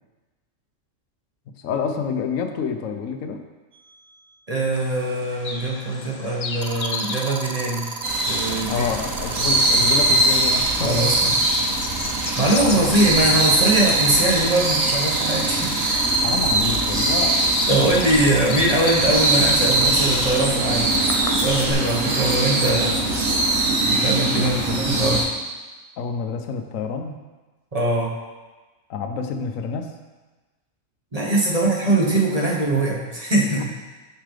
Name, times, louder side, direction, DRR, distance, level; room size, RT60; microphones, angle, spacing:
voice 1, 1.6-3.4 8.7-11.4 12.6-13.1 16.2-17.4 24.4-24.6 26.0-27.2 28.9-29.9, left 5 dB, 80° left, 5 dB, 1.1 m, -28 dB
sound 1, 3.7-4.0 6.6-20.4 20.8-23.4, right 5 dB, 45° right, 0.6 m, -34 dB
voice 2, 4.5-7.9 8.3-8.8 10.8-11.3 12.3-16.1 17.7-21.1 21.3-23.0 23.9-25.2 27.7-28.1 31.1-33.8, right 2 dB, 30° right, -4 dB, 1.2 m, -22 dB
Bird vocalization bird call bird song, 4.7-21.7, left 3 dB, 50° left, 0.4 m, -35 dB
sound 2, 8.0-25.2, right 2 dB, 80° right, 1.6 m, -22 dB
9.6 x 5.6 x 3.3 m, 1.2 s
omnidirectional pair, 1.4 m